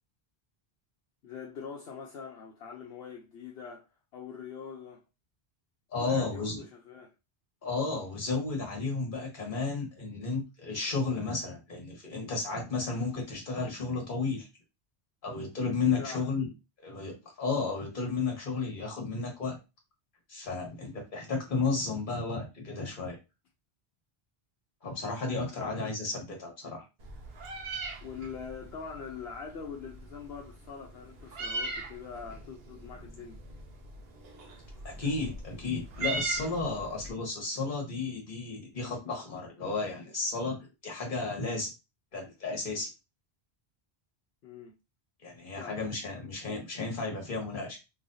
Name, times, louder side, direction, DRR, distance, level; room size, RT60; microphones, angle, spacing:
voice 1, 1.2-3.9 4.1-5.0 6.0-7.1 16.0-16.3 25.5-25.8 28.0-33.4 34.8-34.9 44.4-44.7 45.6-45.8, left 6 dB, 75° left, 0.9 m, -43 dB
voice 2, 5.9-6.6 7.6-14.5 15.2-16.5 16.8-19.6 20.3-23.2 24.8-26.8 34.8-40.6 40.8-41.7 42.1-42.9 45.2-47.8, left 4 dB, 55° left, 1.4 m, -33 dB
Meow, 27.0-37.1, right 3 dB, 70° right, 0.9 m, -40 dB
3.2 x 3.0 x 2.6 m
omnidirectional pair, 1.1 m